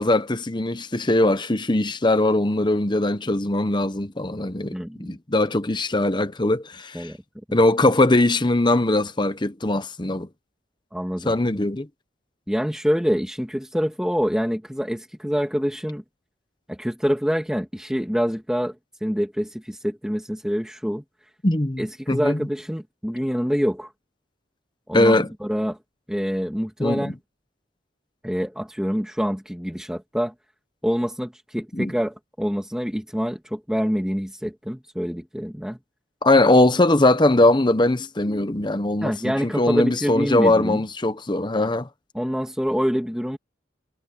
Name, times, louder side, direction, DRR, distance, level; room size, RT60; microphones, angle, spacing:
voice 1, 0.0-4.7 5.0-7.1 7.5-10.3 11.2-11.9 21.4-22.5 24.9-25.3 26.8-27.0 31.7-31.9 36.2-41.9, left 2 dB, 25° left, 0.9 m, -20 dB
voice 2, 4.7-5.2 6.9-7.2 10.9-11.3 12.5-16.0 16.7-18.8 19.0-21.0 21.8-23.9 24.9-25.1 25.4-25.8 26.1-27.2 28.2-30.3 30.8-35.8 39.0-40.8 42.1-43.4, equal, 5° right, 1.9 m, -26 dB
head